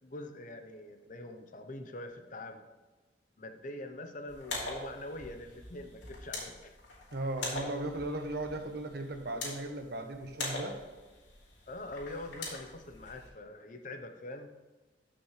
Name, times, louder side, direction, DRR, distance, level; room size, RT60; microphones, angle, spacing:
voice 1, 0.0-2.6 3.4-6.8 11.7-14.5, left 1 dB, 45° left, 6 dB, 0.8 m, -44 dB
sound 1, 4.3-13.3, left 2 dB, 80° left, 2.8 m, -43 dB
voice 2, 7.1-10.8, right 1 dB, 60° right, 6 dB, 1.0 m, -37 dB
13.0 x 6.1 x 3.2 m, 1.2 s
head